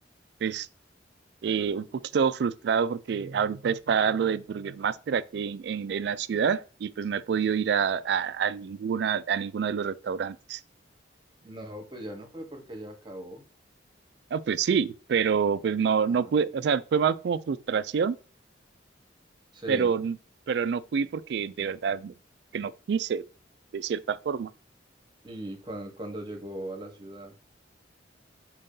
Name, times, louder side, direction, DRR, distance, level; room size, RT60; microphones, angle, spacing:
voice 1, 1.4-10.6 14.3-18.2 19.7-20.2 20.5-22.1 22.5-23.2 23.7-24.5, right 6 dB, 60° right, 0.3 m, -27 dB
voice 2, 11.4-13.4 16.1-16.4 19.5-19.9 25.2-27.3, right 1 dB, 25° right, 1.0 m, -39 dB
4.5 x 2.7 x 3.7 m
head